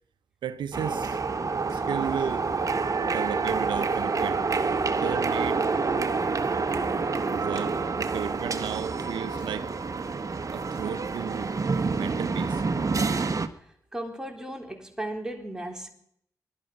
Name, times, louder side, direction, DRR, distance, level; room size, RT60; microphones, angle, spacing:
voice 1, 0.4-1.2 1.7-2.5 3.0-4.4 4.9-5.6 7.3-9.7 10.5-11.5 11.9-12.6, right 8 dB, 85° right, 0.8 m, -34 dB
sound 1, 0.7-13.5, right 4 dB, 45° right, 1.4 m, -27 dB
voice 2, 13.9-15.9, right 1 dB, 10° right, 4.0 m, -35 dB
21.5 x 12.0 x 5.3 m
supercardioid pair, 45°, 8 cm